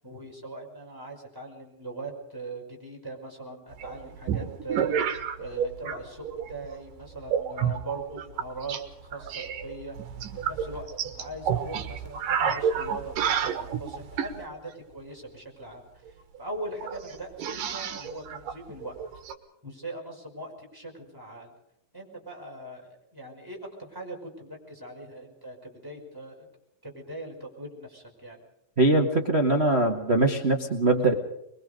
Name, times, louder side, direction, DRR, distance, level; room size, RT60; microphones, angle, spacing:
voice 1, 0.0-8.8 9.0-10.0 10.3-16.0 16.4-18.9 19.6-21.5 21.9-26.5 26.8-28.4, right 2 dB, 5° right, -1 dB, 5.2 m, -40 dB
sound 1, 3.8-6.0 6.3-6.7 7.3-8.8 9.1-14.4 16.1-16.2 16.4-16.5 16.8-19.3, right 8 dB, 70° right, 3.0 m, -30 dB
voice 2, 28.8-31.1, right 2 dB, 50° right, 1 dB, 0.7 m, -22 dB
23.0 x 22.5 x 5.2 m, 0.79 s
omnidirectional pair, 4.2 m